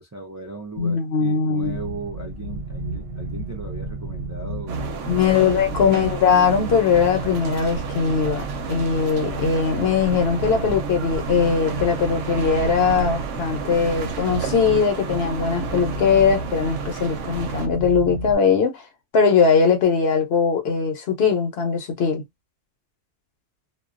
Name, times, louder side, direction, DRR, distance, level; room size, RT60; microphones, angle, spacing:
voice 1, 0.0-6.0, right 3 dB, 25° right, 0.4 m, -38 dB
voice 2, 0.8-1.8 5.1-18.8 19.1-22.2, left 6 dB, 60° left, 0.9 m, -20 dB
sound 1, 1.6-18.4, right 2 dB, 60° right, 0.8 m, -32 dB
sound 2, 4.7-17.7, right 6 dB, 90° right, 0.9 m, -33 dB
2.3 x 2.2 x 2.4 m
omnidirectional pair, 1.2 m